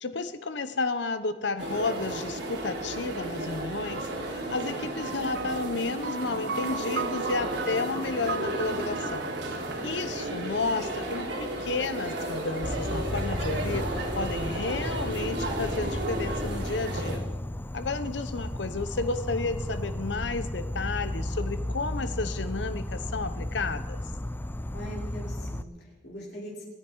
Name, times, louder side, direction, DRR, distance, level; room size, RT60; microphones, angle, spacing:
voice 1, 0.0-9.3 9.8-17.2 17.7-24.0, left 3 dB, 80° left, 11 dB, 0.9 m, -32 dB
sound 1, 1.6-17.2, right 1 dB, 85° right, 3.3 m, -34 dB
sound 2, 5.4-11.1, right 6 dB, 60° right, 0.4 m, -37 dB
voice 2, 9.7-10.1 24.7-26.6, equal, 65° left, -4 dB, 6.1 m, -42 dB
Insect, 12.6-25.6, left 1 dB, 10° left, 0.5 m, -34 dB
27.0 x 9.8 x 4.7 m, 1.2 s
head